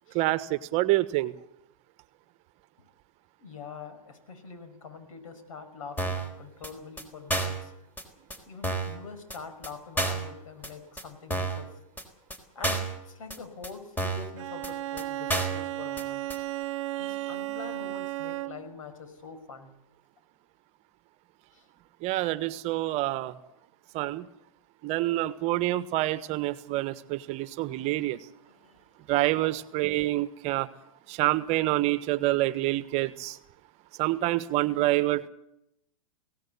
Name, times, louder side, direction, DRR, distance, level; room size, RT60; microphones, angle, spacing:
voice 1, 0.1-1.3 22.0-23.3 23.9-24.3 24.8-28.2 29.1-30.7 31.1-33.4 34.0-35.3, right 17 dB, 40° right, 14 dB, 1.3 m, -27 dB
voice 2, 3.4-7.7 8.5-11.7 12.5-16.3 17.0-19.7 21.5-21.7 28.5-28.8, left 5 dB, 70° left, 9 dB, 5.8 m, -44 dB
sound 1, 6.0-6.3 6.6-6.7 7.0-7.1 7.3-7.6 8.0-8.1 8.3-8.4 8.6-9.0 9.3-9.4 9.6-9.7 10.0-10.3 10.6-10.7 11.0-11.1 11.3-11.6 12.0-12.1 12.3-12.4 12.6-13.0 13.3-13.4 13.6-13.7 14.0-14.3 14.6-14.7 15.0-15.1 15.3-15.6 16.0-16.1 16.3-16.4, right 2 dB, 10° left, 3.9 m, -30 dB
Bowed string instrument, 14.4-18.8, right 16 dB, 60° right, 1.0 m, -34 dB
23.0 x 17.5 x 8.4 m, 0.83 s
hypercardioid pair, 115°, 18 cm